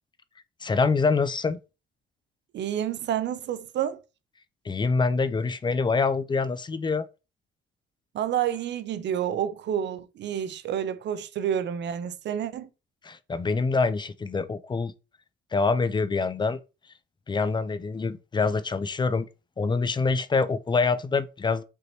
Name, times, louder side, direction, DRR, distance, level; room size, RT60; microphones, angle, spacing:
voice 1, 0.6-1.6 4.6-7.1 13.0-14.9 15.5-16.6 17.3-19.3 19.6-21.6, left 4 dB, 25° left, 0.4 m, -25 dB
voice 2, 2.5-4.0 8.1-12.7, right 9 dB, 65° right, 0.6 m, -29 dB
5.3 x 2.9 x 3.1 m
cardioid pair, 90°, 20 cm